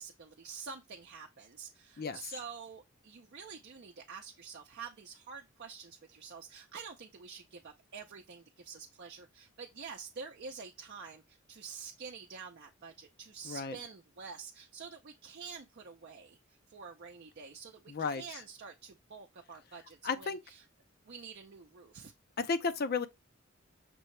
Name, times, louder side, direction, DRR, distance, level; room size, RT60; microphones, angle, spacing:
voice 1, 0.0-20.7 21.0-22.1, right 5 dB, 55° right, 0.6 m, -48 dB
voice 2, 13.5-13.8 17.9-18.2 20.0-20.4 22.4-23.1, left 4 dB, 50° left, 0.5 m, -33 dB
6.0 x 2.8 x 3.2 m
head